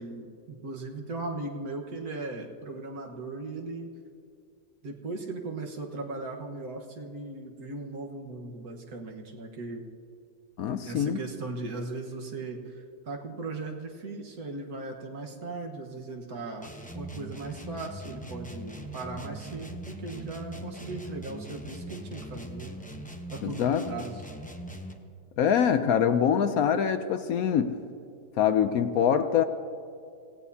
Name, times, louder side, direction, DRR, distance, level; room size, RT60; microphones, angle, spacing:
voice 1, 0.0-3.9 4.8-9.9 10.8-22.7 23.3-24.2, right 3 dB, 60° right, 1 dB, 1.8 m, -38 dB
voice 2, 10.6-11.2 23.4-23.9 25.4-27.8 28.4-29.4, left 8 dB, 70° left, 9 dB, 1.0 m, -24 dB
sound 1, 16.6-25.1, right 1 dB, 10° left, 0.5 m, -41 dB
25.5 x 16.5 x 2.8 m, 2.4 s
omnidirectional pair, 1.8 m